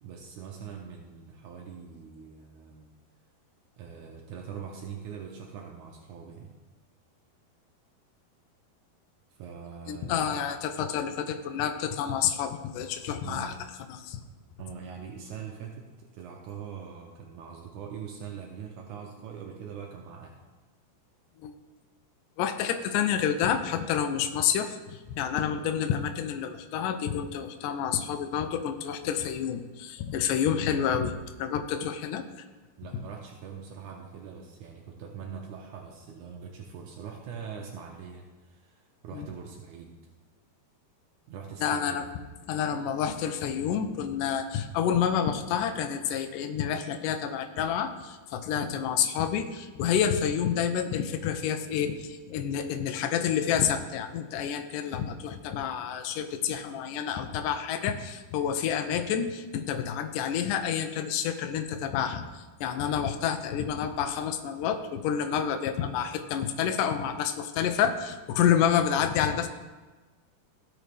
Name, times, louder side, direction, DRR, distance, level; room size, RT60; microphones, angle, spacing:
voice 1, 0.0-2.9 3.8-6.6 9.3-10.5 13.2-13.5 14.6-20.4 30.5-30.8 32.8-40.0 41.3-42.0, right 7 dB, 85° right, 1 dB, 1.7 m, -42 dB
voice 2, 9.9-13.5 13.9-14.2 21.4-21.5 22.4-32.2 39.1-39.3 41.6-42.1 42.5-69.5, left 8 dB, 80° left, 7 dB, 1.9 m, -29 dB
16.5 x 6.3 x 3.4 m, 1.2 s
omnidirectional pair, 4.6 m